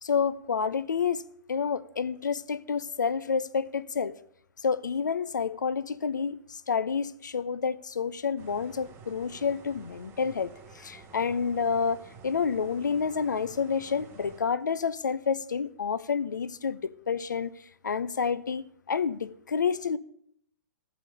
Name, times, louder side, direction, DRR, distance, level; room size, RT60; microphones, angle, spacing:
voice 1, 0.0-1.2 1.5-4.2 4.6-17.5 17.8-20.0, left 6 dB, 85° left, 0.6 m, -29 dB
sound 1, 8.4-14.4, right 5 dB, 25° right, 1.0 m, -51 dB
15.0 x 5.0 x 6.3 m
hypercardioid pair, 120°, 10 cm